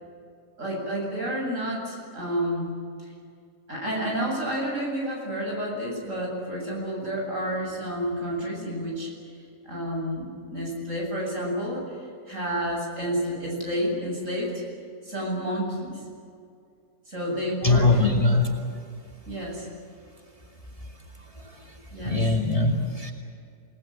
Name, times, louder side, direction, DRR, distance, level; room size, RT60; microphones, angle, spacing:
voice 1, 0.6-2.7 3.0-3.1 3.7-9.1 9.6-14.5 15.0-16.0 17.1-18.0 19.3-19.7 21.9-22.3, equal, 60° right, -2 dB, 8.2 m, -30 dB
voice 2, 17.6-18.5 22.0-23.1, left 2 dB, 25° left, 0 dB, 2.4 m, -21 dB
28.0 x 19.5 x 8.8 m, 2.3 s
omnidirectional pair, 1.5 m